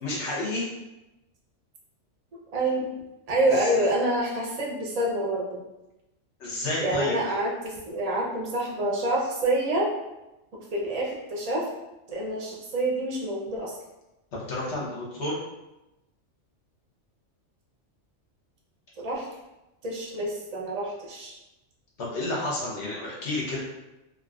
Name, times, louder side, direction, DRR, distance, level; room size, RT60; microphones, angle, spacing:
voice 1, 0.0-0.7 3.5-3.9 6.4-7.3 14.3-15.4 22.0-23.6, left 1 dB, 65° left, -5 dB, 1.2 m, -30 dB
voice 2, 2.5-2.9 3.3-5.6 6.8-9.9 10.7-11.7 12.1-13.7 19.0-19.3 19.8-21.3, right 1 dB, 40° right, -3 dB, 0.6 m, -27 dB
3.6 x 2.5 x 2.3 m, 0.97 s
omnidirectional pair, 1.3 m